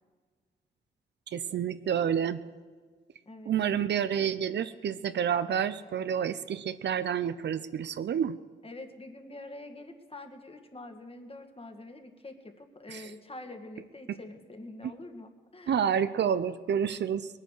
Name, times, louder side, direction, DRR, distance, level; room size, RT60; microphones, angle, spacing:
voice 1, 1.3-2.4 3.5-8.4 12.9-13.0 15.7-17.3, right 8 dB, 60° right, 13 dB, 0.6 m, -29 dB
voice 2, 8.6-15.8, left 2 dB, 30° left, 5 dB, 2.1 m, -46 dB
20.0 x 9.5 x 6.6 m, 1.5 s
supercardioid pair, 55°, 20 cm